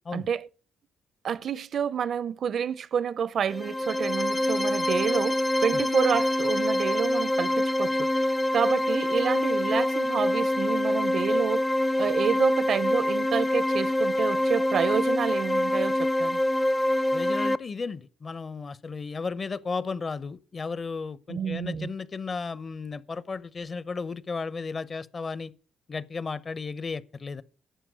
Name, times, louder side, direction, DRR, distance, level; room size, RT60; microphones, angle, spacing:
voice 1, 0.1-0.5 1.2-11.7 12.0-16.4 21.3-21.9, right 7 dB, 60° right, 0.6 m, -29 dB
sound 1, 3.5-17.6, left 1 dB, 10° left, 0.5 m, -25 dB
voice 2, 17.1-25.5 25.9-27.4, left 4 dB, 35° left, 0.8 m, -34 dB
11.0 x 7.3 x 9.2 m
cardioid pair, 90°, 0 cm